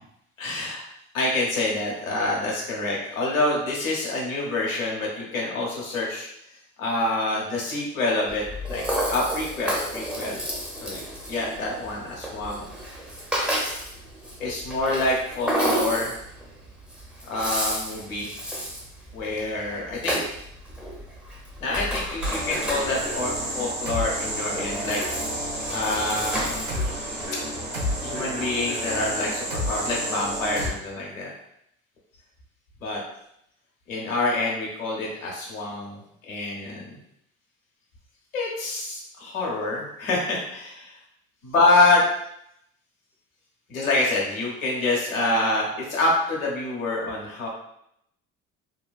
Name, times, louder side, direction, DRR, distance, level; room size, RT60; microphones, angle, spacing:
voice 1, 0.4-0.8 1.1-6.3 6.8-10.4 10.8-11.0 11.3-12.7 14.4-16.1 17.3-18.3 19.1-20.2 21.6-25.0 25.7-26.6 28.0-31.3 32.8-33.0 33.9-36.0 36.3-36.9 38.3-40.9 41.5-42.0 43.7-47.5, left 2 dB, 85° left, -3 dB, 0.9 m, -26 dB
Rattle (instrument), 8.3-27.3, equal, ahead, 0.7 m, -32 dB
sound 1, 22.2-30.7, equal, 80° right, 1.0 m, -30 dB
3.2 x 2.2 x 2.4 m, 0.76 s
hypercardioid pair, 60°, 40 cm